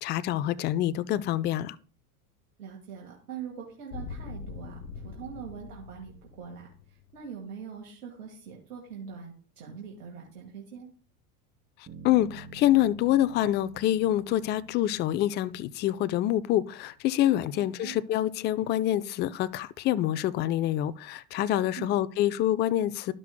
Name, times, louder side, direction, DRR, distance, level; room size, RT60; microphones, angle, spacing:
voice 1, 0.0-1.8 12.0-23.1, left 13 dB, 25° left, 0.3 m, -26 dB
voice 2, 2.6-10.9 17.5-18.0 21.8-22.0, right 7 dB, 75° right, 1.9 m, -43 dB
sound 1, 3.9-7.1, left 4 dB, 85° left, 1.1 m, -42 dB
Bass guitar, 11.9-16.2, right 3 dB, 30° right, 3.0 m, -49 dB
12.5 x 6.0 x 2.2 m
hypercardioid pair, 90°, 46 cm